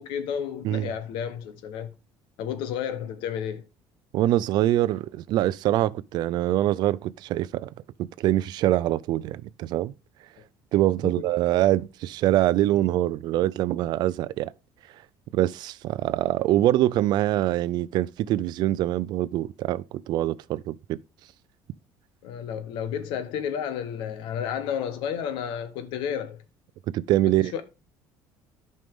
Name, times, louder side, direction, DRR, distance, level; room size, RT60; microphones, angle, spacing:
voice 1, 0.0-1.9 2.4-3.7 11.0-11.3 22.2-26.4 27.4-27.6, left 8 dB, 80° left, 1.0 m, -31 dB
voice 2, 4.1-7.7 8.2-9.9 10.7-14.5 15.3-21.0 26.9-27.5, right 14 dB, 60° right, 0.4 m, -24 dB
11.0 x 5.4 x 3.5 m
cardioid pair, 135°, 8 cm